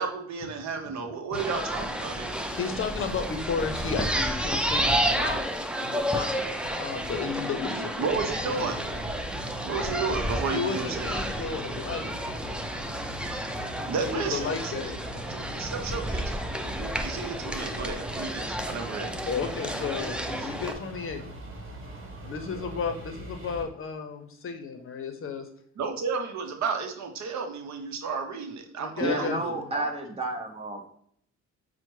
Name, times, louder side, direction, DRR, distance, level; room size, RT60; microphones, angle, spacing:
voice 1, 0.0-2.4 4.9-5.0 8.0-8.8 9.6-11.1 13.9-14.9 15.3-19.2 20.4-20.5 25.8-29.9, right 5 dB, 65° right, 6 dB, 0.7 m, -33 dB
sound 1, 1.3-20.7, equal, 5° right, 0.4 m, -31 dB
voice 2, 2.2-5.4 5.7-6.4 6.7-8.1 8.4-8.9 10.5-12.2 14.0-15.0 15.8-16.2 19.3-21.3 22.2-25.5 28.8-29.7, left 5 dB, 45° left, 6 dB, 0.6 m, -33 dB
sound 2, 8.0-23.6, right 1 dB, 45° right, 1.2 m, -41 dB
voice 3, 29.0-30.9, right 2 dB, 20° right, 2 dB, 0.9 m, -31 dB
5.5 x 2.1 x 3.1 m, 0.64 s
cardioid pair, 90°, 30 cm